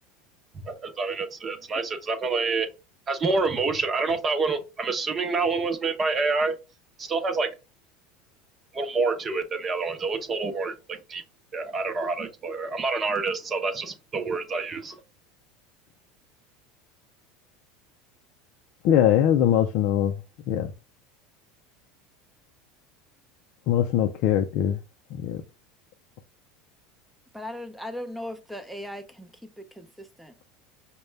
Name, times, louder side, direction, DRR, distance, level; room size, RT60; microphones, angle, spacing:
voice 1, 0.5-2.7 3.1-6.6 7.0-7.5 8.7-11.2 11.5-15.0, right 4 dB, 30° right, 0.8 m, -27 dB
voice 2, 18.8-20.7 23.7-24.8 25.1-25.4, left 10 dB, 65° left, 0.5 m, -22 dB
voice 3, 27.3-30.4, left 1 dB, 5° right, 0.7 m, -38 dB
5.2 x 2.2 x 3.3 m
supercardioid pair, 105°, 0 cm